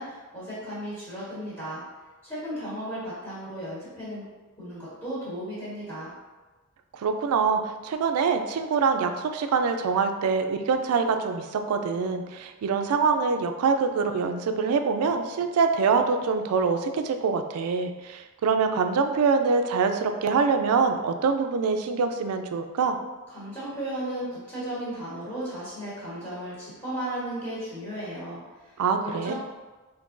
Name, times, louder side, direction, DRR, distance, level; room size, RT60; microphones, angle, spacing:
voice 1, 0.0-1.8 2.2-4.2 4.6-6.1 23.3-28.8 29.0-29.3, right 1 dB, 10° left, -12 dB, 1.3 m, -35 dB
voice 2, 6.9-23.0 28.8-29.3, right 5 dB, 85° right, 7 dB, 0.3 m, -25 dB
3.7 x 2.6 x 2.5 m, 1.2 s
head